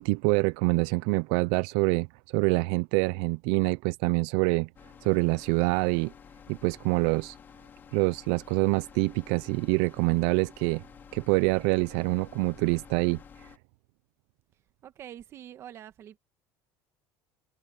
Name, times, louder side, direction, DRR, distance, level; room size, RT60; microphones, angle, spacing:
voice 1, 0.0-2.1 2.3-4.7 5.0-6.1 6.5-7.4 7.9-10.8 11.1-13.2, right 26 dB, 75° right, 0.4 m, -25 dB
sound 1, 4.8-13.6, left 7 dB, 25° left, 3.2 m, -51 dB
voice 2, 14.8-16.2, right 11 dB, 35° right, 1.4 m, -45 dB
cardioid pair, 160°, 8 cm